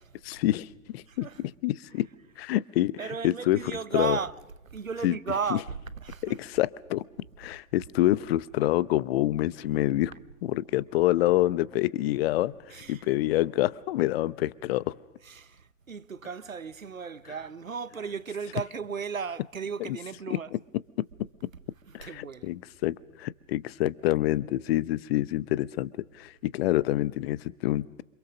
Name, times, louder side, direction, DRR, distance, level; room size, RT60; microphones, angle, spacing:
voice 1, 0.2-1.3 1.6-2.1 2.4-2.9 3.2-4.2 5.0-5.2 5.5-5.6 6.2-7.0 7.4-10.1 10.4-15.0 19.9-20.0 20.3-20.4 21.0-21.1 21.9-28.0, left 15 dB, 50° left, 0.9 m, -27 dB
voice 2, 1.0-1.5 1.9-2.4 3.0-6.5 10.1-10.2 12.7-13.2 15.2-20.6 21.5-22.5, right 6 dB, 90° right, 0.8 m, -36 dB
28.0 x 26.5 x 6.4 m
figure-of-eight pair, 90°, 39 cm